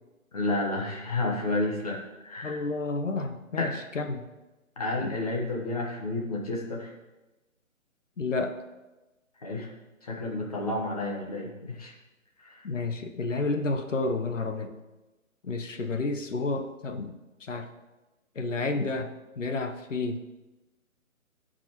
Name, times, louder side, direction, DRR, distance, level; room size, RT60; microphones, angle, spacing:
voice 1, 0.3-2.0 2.2-2.6 3.6-3.7 4.8-6.9 9.4-9.7 10.0-11.9 12.4-12.7, left 2 dB, 25° left, -1 dB, 1.2 m, -31 dB
voice 2, 2.4-4.3 5.0-5.1 8.2-8.5 12.6-14.7 15.4-17.1 17.4-17.7 18.3-20.2, left 3 dB, 60° left, 6 dB, 1.0 m, -30 dB
15.0 x 5.2 x 3.0 m, 1.1 s
hypercardioid pair, 175°, 42 cm